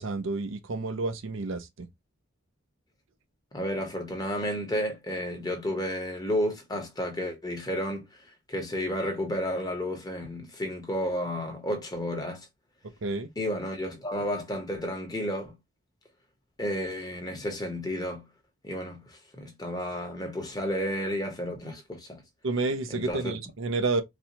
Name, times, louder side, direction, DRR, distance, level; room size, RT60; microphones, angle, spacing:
voice 1, 0.0-1.9 13.0-13.3 22.4-24.0, right 3 dB, 60° right, 0.5 m, -30 dB
voice 2, 3.5-8.0 8.5-12.5 13.4-15.5 16.6-18.2 18.6-22.2 22.9-23.4, equal, 20° left, 1.0 m, -32 dB
4.1 x 2.2 x 2.7 m
head